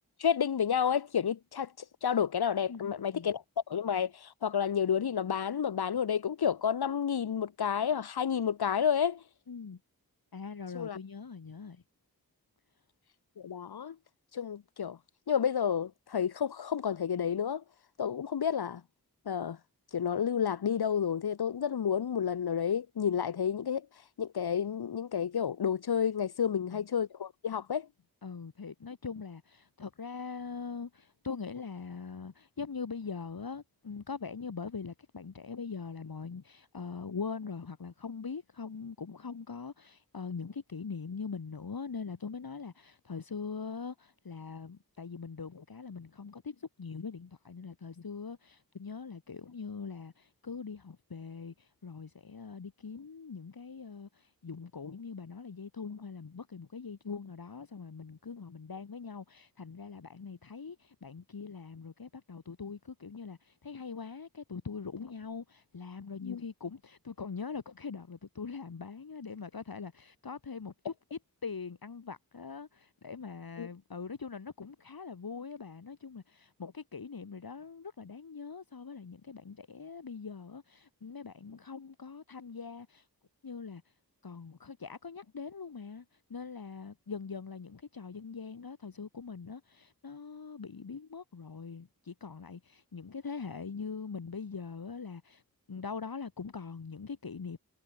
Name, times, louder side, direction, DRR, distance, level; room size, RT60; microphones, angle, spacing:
voice 1, 0.2-1.7 2.0-9.2 10.7-11.0 13.4-14.0 14.3-15.0 15.3-17.6 18.0-18.8 19.3-19.6 19.9-23.9 24.2-27.9 66.2-66.4 73.6-73.7, left 8 dB, 90° left, 0.7 m, -30 dB
voice 2, 2.7-3.3 9.5-9.8 10.3-11.8 26.4-26.9 28.2-83.1 83.4-83.9 84.2-95.4 95.7-97.6, left 5 dB, 70° left, 1.3 m, -42 dB
wide cardioid pair, 55°, 37 cm